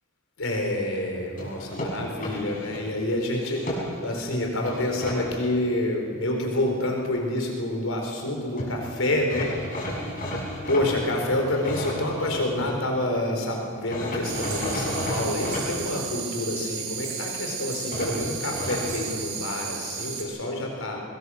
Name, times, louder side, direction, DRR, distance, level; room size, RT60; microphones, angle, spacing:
voice 1, 0.4-9.5 10.6-21.0, left 1 dB, 85° left, 1 dB, 4.6 m, -28 dB
sound 1, 1.4-2.8 3.4-4.1 4.6-5.2 8.3-8.4 8.6-8.7 9.3-12.8 13.9-15.6 17.9-18.8, left 1 dB, 40° left, 6.5 m, -33 dB
sound 2, 14.2-20.2, right 7 dB, 85° right, 3.8 m, -34 dB
23.0 x 21.0 x 6.5 m, 2.2 s
head